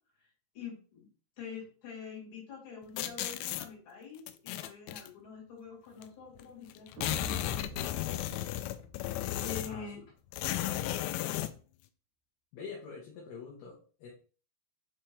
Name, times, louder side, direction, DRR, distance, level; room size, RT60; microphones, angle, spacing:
voice 1, 0.5-1.1 1.4-8.2 9.4-10.0, left 6 dB, 45° left, -5 dB, 4.2 m, -46 dB
sound 1, 3.0-3.7 4.3-5.1 6.0-6.1 6.4-6.5 6.7-9.9 10.3-11.6, left 14 dB, 85° left, 2.7 m, -34 dB
sound 2, 7.0-9.6, equal, 80° right, 1.7 m, -44 dB
voice 2, 9.7-10.0 12.5-14.1, left 5 dB, 65° left, -4 dB, 3.1 m, -45 dB
7.5 x 4.3 x 3.3 m, 0.39 s
omnidirectional pair, 5.3 m